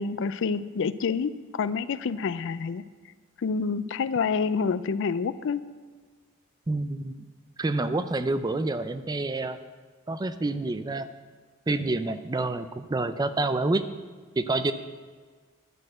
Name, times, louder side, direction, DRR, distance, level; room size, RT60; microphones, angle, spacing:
voice 1, 0.0-2.8 3.4-5.6, left 5 dB, 60° left, 14 dB, 0.4 m, -28 dB
voice 2, 6.7-7.2 7.6-9.6 10.1-11.1 11.7-13.8 14.4-14.7, right 2 dB, 20° right, 11 dB, 0.4 m, -28 dB
11.0 x 6.3 x 7.6 m, 1.6 s
head